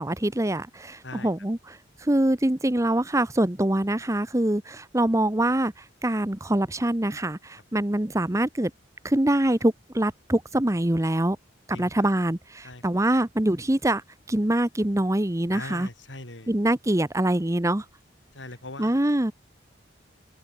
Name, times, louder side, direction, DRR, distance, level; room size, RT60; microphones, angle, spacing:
voice 1, 0.0-1.8 2.0-5.7 6.0-8.7 9.0-11.4 11.7-14.0 14.3-15.9 16.5-17.8 18.8-19.3, right 1 dB, 15° right, 0.9 m, -24 dB
voice 2, 15.5-16.5 18.3-19.0, left 2 dB, 80° left, 5.5 m, -40 dB
head